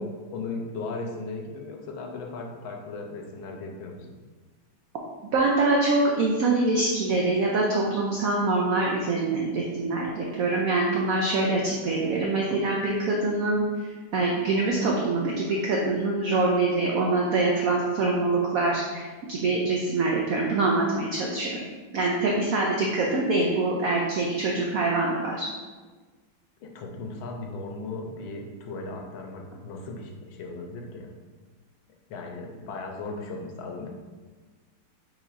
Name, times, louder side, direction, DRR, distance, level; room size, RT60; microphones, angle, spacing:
voice 1, 0.0-4.2 26.6-31.1 32.1-33.9, left 3 dB, 85° left, 2 dB, 1.4 m, -37 dB
voice 2, 5.3-13.6 14.1-21.6 21.9-25.5, right 2 dB, 80° right, -2 dB, 0.7 m, -24 dB
6.1 x 3.3 x 2.4 m, 1.3 s
omnidirectional pair, 2.2 m